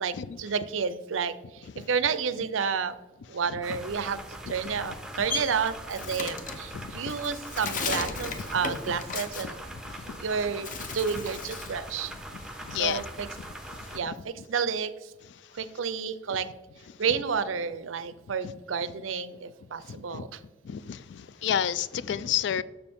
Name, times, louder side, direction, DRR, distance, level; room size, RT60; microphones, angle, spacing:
voice 1, 0.0-3.0 3.3-9.6 10.2-12.1 12.7-13.3 13.9-15.1 15.5-16.5 17.0-20.4, right 6 dB, 85° right, 0.5 m, -31 dB
sound 1, 3.6-14.0, right 1 dB, 5° right, 0.5 m, -42 dB
Bird, 4.8-10.2 10.6-11.8 12.2-13.9, left 4 dB, 40° left, 0.7 m, -36 dB
voice 2, 6.7-7.1 10.1-10.2 12.6-13.0 19.9-20.2 20.6-22.6, left 9 dB, 65° left, 0.3 m, -30 dB
6.9 x 6.8 x 3.5 m
head